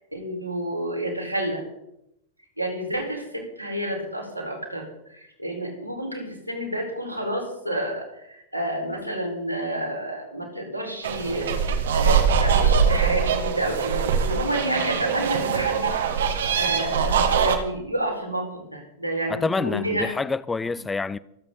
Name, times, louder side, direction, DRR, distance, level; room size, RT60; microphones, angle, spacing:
voice 1, 0.1-1.6 2.6-4.8 5.1-20.1, right 1 dB, 90° right, 4.6 m, -30 dB
sound 1, 11.0-17.6, right 6 dB, 60° right, 1.7 m, -22 dB
voice 2, 19.3-21.2, left 4 dB, 10° left, 0.6 m, -27 dB
25.5 x 8.9 x 4.0 m
figure-of-eight pair, 90°, 0 cm